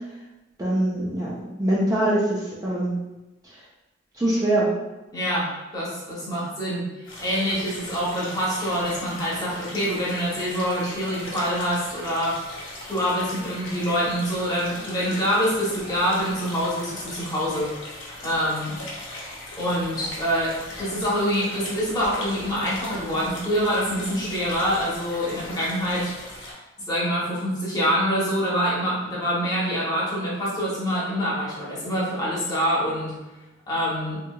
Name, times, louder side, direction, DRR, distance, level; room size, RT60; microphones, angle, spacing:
voice 1, 0.6-2.9 4.1-4.7, right 1 dB, 20° right, -6 dB, 0.4 m, -23 dB
voice 2, 5.1-12.4 12.9-17.7 18.2-18.8 19.6-26.1 26.9-33.2 33.7-34.2, equal, 20° left, -7 dB, 0.9 m, -25 dB
sound 1, 7.0-26.5, left 1 dB, 90° left, 0.8 m, -39 dB
2.9 x 2.7 x 2.3 m, 1.0 s
head